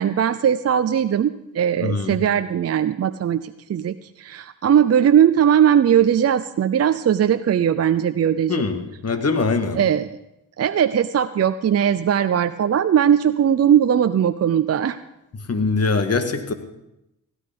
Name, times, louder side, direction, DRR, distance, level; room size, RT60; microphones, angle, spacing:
voice 1, 0.0-8.6 9.8-10.1 10.6-15.0, right 9 dB, 40° right, 10 dB, 0.6 m, -19 dB
voice 2, 1.8-2.2 8.5-9.8 15.3-16.5, left 4 dB, 40° left, 8 dB, 1.9 m, -23 dB
16.5 x 12.0 x 5.2 m, 0.86 s
hypercardioid pair, 45°, 38 cm